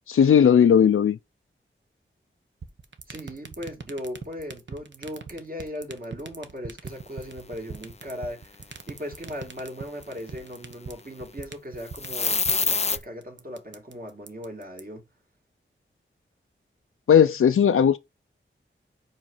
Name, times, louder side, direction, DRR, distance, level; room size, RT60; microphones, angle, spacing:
voice 1, 0.1-1.2 17.1-18.0, left 8 dB, 90° left, 0.4 m, -17 dB
sound 1, 2.6-14.8, right 5 dB, 60° right, 0.9 m, -39 dB
voice 2, 3.1-15.0, equal, 45° right, 2.4 m, -38 dB
sound 2, 11.9-13.0, left 4 dB, 30° left, 0.5 m, -24 dB
5.2 x 4.7 x 5.5 m
wide cardioid pair, 85°, 21 cm